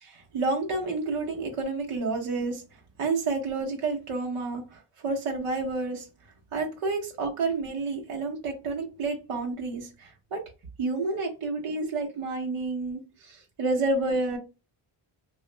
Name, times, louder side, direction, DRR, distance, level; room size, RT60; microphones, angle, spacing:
voice 1, 0.0-2.6 3.0-6.1 6.5-10.4 10.8-14.4, right 3 dB, 85° right, 0 dB, 0.9 m, -30 dB
2.8 x 2.4 x 3.2 m, 0.29 s
wide cardioid pair, 170°, 50 cm